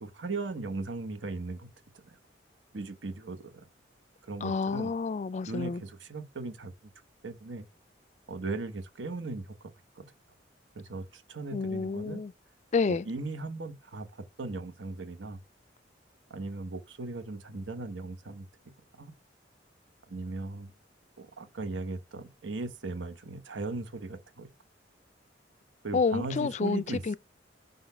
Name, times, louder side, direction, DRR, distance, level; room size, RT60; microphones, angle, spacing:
voice 1, 0.0-1.7 2.0-2.2 2.7-3.7 4.2-4.9 5.4-6.7 7.2-7.7 8.3-10.1 10.7-12.2 12.9-15.4 16.3-18.5 18.9-19.1 20.1-20.7 21.2-24.5 25.8-27.2, right 3 dB, 85° right, 1.0 m, -38 dB
voice 2, 4.4-5.8 11.5-12.3 12.7-13.1 25.9-27.2, left 4 dB, 40° left, 0.3 m, -29 dB
5.2 x 4.0 x 5.3 m
head